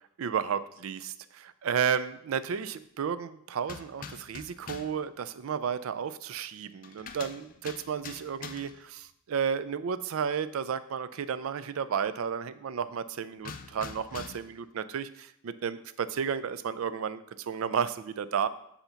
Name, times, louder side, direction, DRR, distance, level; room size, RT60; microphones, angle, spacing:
voice 1, 0.2-18.5, right 7 dB, 85° right, 14 dB, 0.4 m, -32 dB
sound 1, 3.6-5.0 6.8-8.9 13.4-14.6, left 6 dB, 40° left, 0.3 m, -44 dB
7.9 x 2.8 x 5.6 m, 0.74 s
head